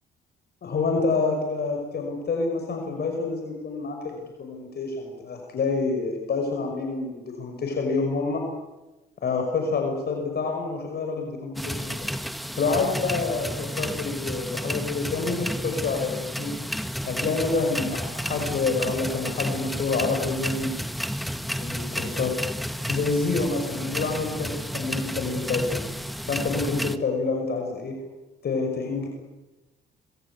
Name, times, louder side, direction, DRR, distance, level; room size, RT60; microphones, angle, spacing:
voice 1, 0.6-8.4 9.2-12.1 12.6-16.5 17.1-20.7 21.6-22.3 22.9-25.8 26.3-27.9 28.4-29.1, left 4 dB, 55° left, 2 dB, 5.8 m, -27 dB
sound 1, 11.6-27.0, equal, ahead, 1.5 m, -31 dB
27.0 x 22.0 x 8.5 m, 1.1 s
cardioid pair, 90°, 20 cm